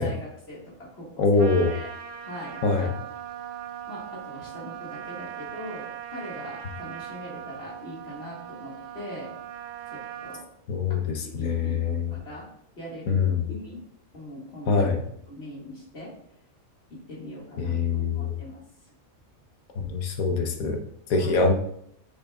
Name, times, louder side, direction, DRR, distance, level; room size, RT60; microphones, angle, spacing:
voice 1, 0.0-1.9 2.2-3.1 3.9-9.3 9.9-10.5 10.9-12.5 12.8-13.8 14.1-15.0 15.3-16.1 17.1-18.6 21.1-21.4, equal, 45° left, -5 dB, 2.1 m, -41 dB
voice 2, 1.2-1.7 2.6-2.9 10.7-12.1 13.1-13.5 14.7-15.0 17.6-18.3 19.8-20.8 21.1-21.5, left 4 dB, 85° left, 4 dB, 1.3 m, -24 dB
Trumpet, 1.4-10.5, right 10 dB, 65° right, 0.9 m, -39 dB
6.6 x 6.2 x 2.3 m, 0.69 s
omnidirectional pair, 1.5 m